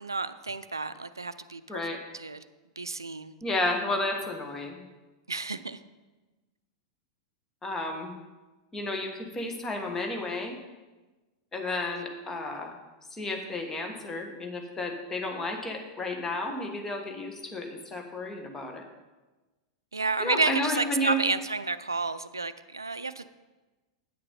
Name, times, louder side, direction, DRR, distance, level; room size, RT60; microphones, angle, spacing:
voice 1, 0.0-1.8 2.1-2.4 2.8-3.3 5.3-5.8 19.9-23.3, right 3 dB, 85° right, 13 dB, 0.4 m, -31 dB
voice 2, 1.7-2.0 3.4-4.8 7.6-8.1 8.7-10.6 11.5-12.7 13.1-18.8 20.2-21.2, left 1 dB, 15° left, 3 dB, 1.4 m, -32 dB
9.2 x 6.7 x 5.4 m, 1.2 s
figure-of-eight pair, 95°, 2 cm